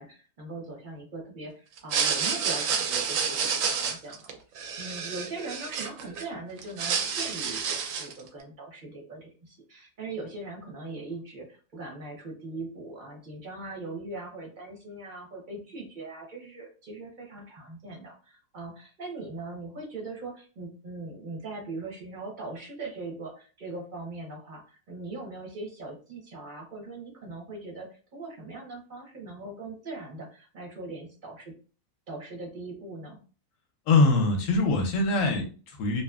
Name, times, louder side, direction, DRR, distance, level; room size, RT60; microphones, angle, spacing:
voice 1, 0.0-4.3 4.8-31.5 32.1-33.2, right 2 dB, 45° right, -1 dB, 0.7 m, -40 dB
sound 1, 1.8-6.2 6.6-8.2, right 6 dB, 70° right, 0.8 m, -29 dB
voice 2, 33.9-36.0, left 3 dB, 70° left, 3 dB, 0.8 m, -23 dB
2.8 x 2.4 x 2.3 m, 0.37 s
omnidirectional pair, 1.7 m